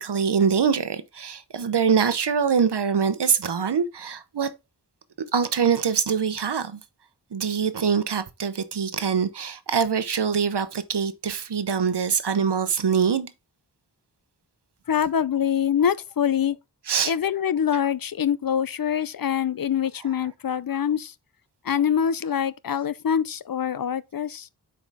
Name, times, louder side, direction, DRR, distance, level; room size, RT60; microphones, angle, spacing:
voice 1, 0.0-4.5 5.3-6.8 7.3-13.3 16.9-17.1, right 6 dB, 80° right, 0.9 m, -24 dB
voice 2, 14.9-16.6 17.0-21.1 21.6-24.5, left 8 dB, 60° left, 0.6 m, -24 dB
8.2 x 4.9 x 3.5 m
wide cardioid pair, 50°, 40 cm